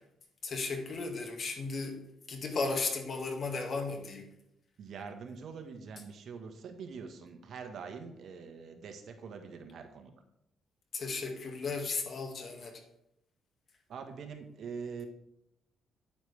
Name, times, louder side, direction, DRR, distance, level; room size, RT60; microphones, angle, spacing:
voice 1, 0.4-2.0 2.3-4.2 10.9-12.8, left 4 dB, 50° left, 3 dB, 2.0 m, -35 dB
voice 2, 4.8-10.1 13.9-15.1, right 5 dB, 65° right, 5 dB, 1.4 m, -44 dB
9.3 x 9.0 x 3.4 m, 0.81 s
cardioid pair, 90°, 0 cm